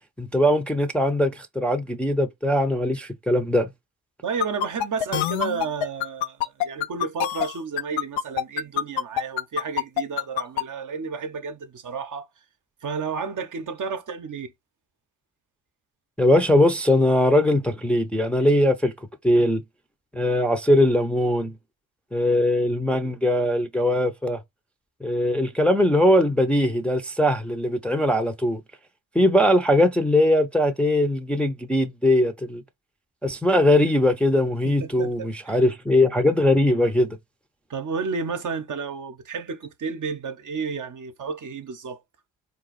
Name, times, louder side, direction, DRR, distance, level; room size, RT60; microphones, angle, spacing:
voice 1, 0.2-3.7 16.2-18.9 19.2-19.6 20.1-21.5 22.1-24.4 25.0-28.6 29.1-32.6 33.2-37.2, left 1 dB, 5° left, 0.6 m, -20 dB
voice 2, 4.2-12.3 12.8-14.5 34.6-35.6 37.7-42.0, right 5 dB, 40° right, 0.8 m, -31 dB
sound 1, 4.4-10.6, left 12 dB, 80° left, 0.6 m, -25 dB
4.0 x 2.3 x 3.9 m
supercardioid pair, 55°, 46 cm